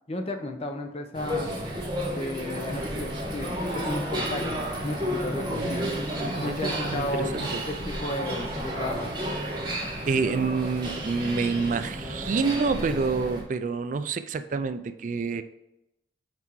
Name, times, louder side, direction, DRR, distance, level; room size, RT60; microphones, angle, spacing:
voice 1, 0.1-1.5 2.1-4.6 4.8-5.9 6.4-9.1, left 1 dB, 35° left, 6 dB, 0.7 m, -33 dB
sound 1, 1.1-13.4, equal, 25° right, 1.4 m, -32 dB
voice 2, 6.2-7.6 10.1-15.4, right 4 dB, 45° right, 11 dB, 0.3 m, -28 dB
6.0 x 4.5 x 4.7 m, 0.87 s
head